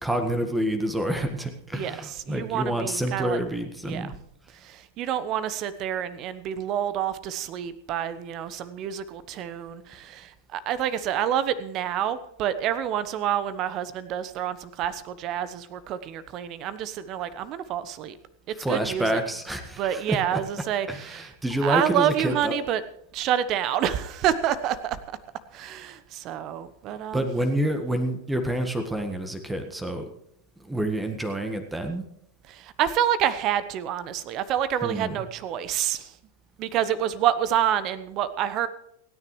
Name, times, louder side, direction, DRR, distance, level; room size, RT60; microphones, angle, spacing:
voice 1, 0.0-4.2 18.5-20.4 20.9-22.6 27.1-30.0 30.6-32.0 34.8-35.3, right 1 dB, 5° right, 7 dB, 1.7 m, -28 dB
voice 2, 1.7-3.4 3.8-4.1 4.6-18.2 18.7-19.2 19.8-21.3 21.6-22.8 23.1-25.2 25.5-27.3 32.5-36.1 36.6-38.7, right 10 dB, 35° right, 15 dB, 1.0 m, -28 dB
28.5 x 9.9 x 3.2 m, 0.77 s
figure-of-eight pair, 90°, 0 cm